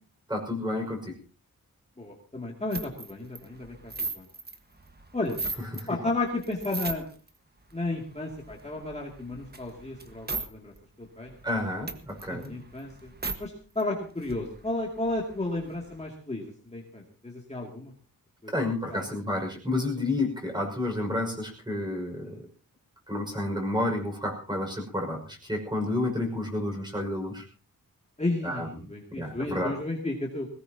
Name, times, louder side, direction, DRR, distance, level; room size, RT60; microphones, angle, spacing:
voice 1, 0.3-1.1 5.6-6.0 11.4-12.5 18.5-22.4 23.1-27.4 28.4-28.7 29.1-29.7, left 1 dB, 10° right, 2 dB, 5.8 m, -30 dB
voice 2, 2.0-4.3 5.1-5.4 5.9-7.1 7.7-11.4 12.3-13.1 13.4-17.9 18.4-18.5 18.9-19.1 22.2-22.4 25.8-25.9 28.2-30.5, left 2 dB, 20° left, -1 dB, 2.6 m, -33 dB
sound 1, 2.7-5.9 6.3-7.3 7.7-10.5 10.7-10.8 11.2-13.4 13.8-13.9 14.1-16.1, right 3 dB, 30° right, 1.6 m, -38 dB
21.0 x 18.5 x 2.9 m, 0.36 s
wide cardioid pair, 125°, 34 cm